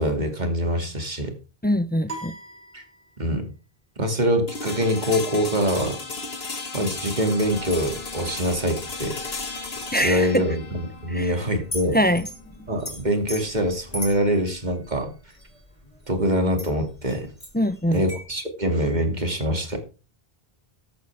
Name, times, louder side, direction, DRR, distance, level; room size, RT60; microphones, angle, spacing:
voice 1, 0.0-1.3 2.7-2.8 3.2-3.5 4.0-6.0 6.7-9.2 10.0-12.0 12.7-15.1 16.1-17.3 17.9-19.8, equal, 45° right, 2.5 m, -24 dB
voice 2, 1.6-2.3 9.9-10.5 11.1-11.3 11.9-12.3 17.5-18.0, equal, 10° left, 0.5 m, -23 dB
sound 1, 2.1-3.5, right 2 dB, 65° right, 3.0 m, -40 dB
sound 2, 4.5-14.4, left 3 dB, 80° left, 2.2 m, -35 dB
sound 3, 7.4-18.2, left 1 dB, 30° left, 5.2 m, -41 dB
13.5 x 11.0 x 3.4 m
omnidirectional pair, 1.0 m